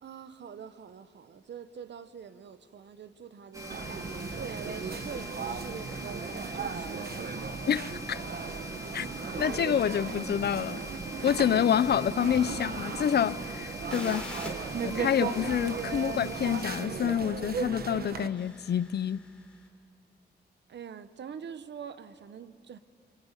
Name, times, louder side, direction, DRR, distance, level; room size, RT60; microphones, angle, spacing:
voice 1, 0.0-3.9 4.4-7.7 9.5-9.8 10.4-10.6 20.7-22.8, right 7 dB, 85° right, 1.1 m, -44 dB
sound 1, 3.5-16.8, left 1 dB, 20° right, 3.7 m, -41 dB
sound 2, 3.7-18.3, right 6 dB, 60° right, 1.0 m, -37 dB
voice 2, 7.7-8.2 8.9-9.1 9.4-10.8 11.2-14.4 14.8-19.2, left 9 dB, 65° left, 0.6 m, -28 dB
sound 3, 13.9-19.6, left 1 dB, 5° left, 3.9 m, -47 dB
28.0 x 25.5 x 8.3 m
wide cardioid pair, 175°, 18 cm